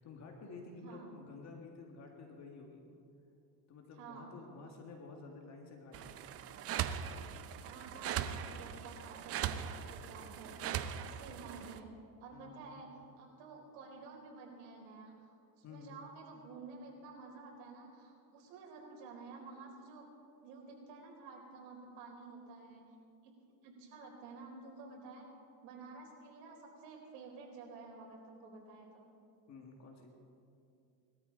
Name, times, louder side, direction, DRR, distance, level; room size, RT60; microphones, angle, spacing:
voice 1, 0.0-2.8 3.7-6.2 12.3-12.8 15.6-16.0 29.5-30.1, left 3 dB, 35° left, 1 dB, 2.0 m, -51 dB
voice 2, 4.0-4.3 7.6-10.6 11.0-11.9 12.2-20.1 20.4-22.9 23.2-23.3 23.6-25.3 25.6-29.2, right 4 dB, 70° right, 0 dB, 4.2 m, -51 dB
sound 1, 5.9-11.8, right 9 dB, 30° right, 0.5 m, -40 dB
20.0 x 13.0 x 4.0 m, 2.5 s
supercardioid pair, 125°, 50 cm